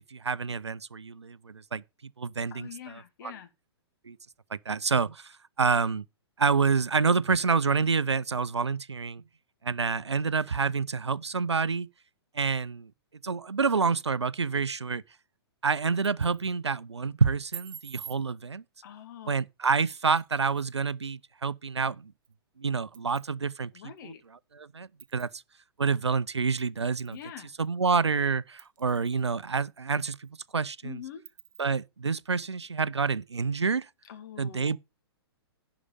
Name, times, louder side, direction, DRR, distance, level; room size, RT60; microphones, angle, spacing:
voice 1, 0.1-1.8 2.2-3.3 4.0-4.2 4.5-6.0 6.4-9.2 9.6-11.9 12.3-12.9 13.2-15.0 15.6-18.6 19.3-22.1 22.6-25.4 25.8-27.2 27.6-31.0 31.6-33.9 34.4-34.8, right 5 dB, 85° right, 0.5 m, -28 dB
voice 2, 2.5-3.5 18.8-19.4 23.7-24.2 27.1-27.5 30.8-31.2 34.1-34.8, left 9 dB, 45° left, 2.0 m, -44 dB
sound 1, 15.8-16.6 17.5-18.2 19.9-20.7 22.2-22.3 22.9-23.3 24.0-24.1 25.0-25.3 26.6-27.3 27.7-27.8 28.6-29.3 29.8-29.9 30.2-30.3 31.3-31.6, right 10 dB, 50° right, 0.7 m, -47 dB
11.0 x 4.9 x 7.0 m
figure-of-eight pair, 115°, 14 cm